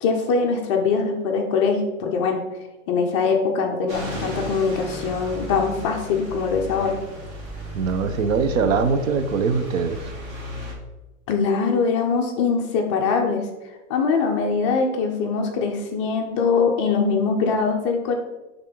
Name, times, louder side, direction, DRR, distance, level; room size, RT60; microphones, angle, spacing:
voice 1, 0.0-2.4 2.9-6.9 11.3-13.5 13.9-18.1, left 5 dB, 25° left, 2 dB, 0.5 m, -22 dB
sound 1, 3.9-10.7, left 1 dB, 35° right, 1.8 m, -34 dB
voice 2, 7.7-10.1, right 5 dB, 70° right, 10 dB, 0.9 m, -22 dB
10.0 x 3.6 x 3.8 m, 1.1 s
hypercardioid pair, 155°, 41 cm